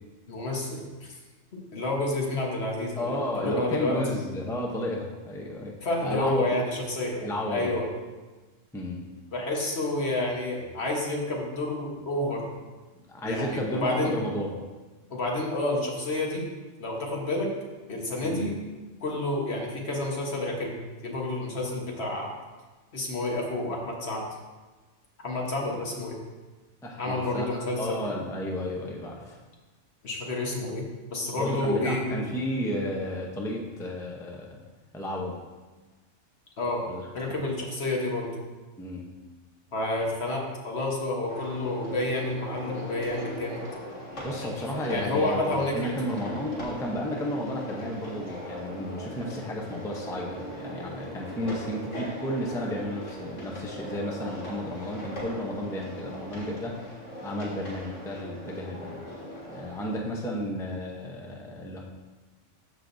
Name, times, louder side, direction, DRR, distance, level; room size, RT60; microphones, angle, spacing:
voice 1, 0.3-1.2 1.5-4.0 5.8-7.8 9.3-12.5 13.2-14.2 15.1-16.4 16.8-17.5 17.9-18.5 19.0-22.3 22.9-24.2 25.2-26.1 27.0-28.0 30.0-30.8 31.1-32.1 36.6-36.8 37.1-38.3 39.7-43.6 44.4-45.9, left 2 dB, 60° left, -1 dB, 1.4 m, -29 dB
voice 2, 3.0-5.7 6.0-6.4 7.2-7.7 8.7-9.0 13.1-14.5 18.2-18.5 26.8-29.4 31.4-34.6 34.9-35.3 36.9-37.1 38.8-39.1 44.1-56.8 57.2-59.1 59.5-61.8, left 1 dB, 5° left, -1 dB, 0.6 m, -33 dB
sound 1, 41.3-59.9, equal, 80° left, 2.1 m, -39 dB
13.0 x 4.9 x 2.6 m, 1.3 s
omnidirectional pair, 1.2 m